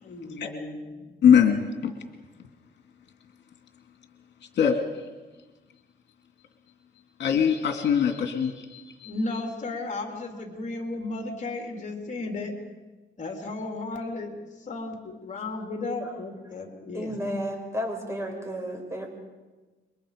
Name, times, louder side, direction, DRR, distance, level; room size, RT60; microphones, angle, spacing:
voice 1, 0.0-1.1 9.0-12.5 13.2-17.2, left 2 dB, 35° left, 2 dB, 3.7 m, -34 dB
voice 2, 1.2-1.9 4.6-5.1 7.2-9.1, left 7 dB, 65° left, 4 dB, 2.4 m, -22 dB
voice 3, 16.9-19.1, equal, 15° right, 2 dB, 6.7 m, -32 dB
29.0 x 24.0 x 5.1 m, 1.2 s
cardioid pair, 90°, 20 cm